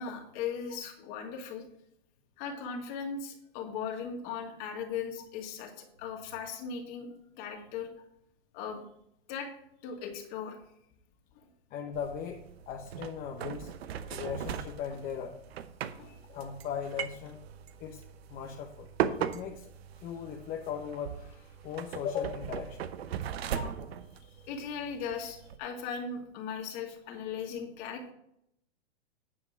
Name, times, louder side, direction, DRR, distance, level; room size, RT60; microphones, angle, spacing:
voice 1, 0.0-1.7 2.4-7.9 8.5-8.8 9.3-9.5 9.8-10.6 11.4-11.5 14.9-15.0 16.0-16.2 24.3-28.1, left 6 dB, 40° left, 2 dB, 2.3 m, -38 dB
voice 2, 11.7-13.7 14.1-15.4 16.3-17.4 17.8-18.0 18.3-18.9 19.2-19.7 20.0-22.8 23.5-23.8, left 7 dB, 25° left, 2 dB, 0.9 m, -38 dB
sound 1, 11.9-25.6, right 9 dB, 65° right, 0.9 m, -39 dB
9.7 x 5.2 x 6.1 m, 0.75 s
hypercardioid pair, 135°, 33 cm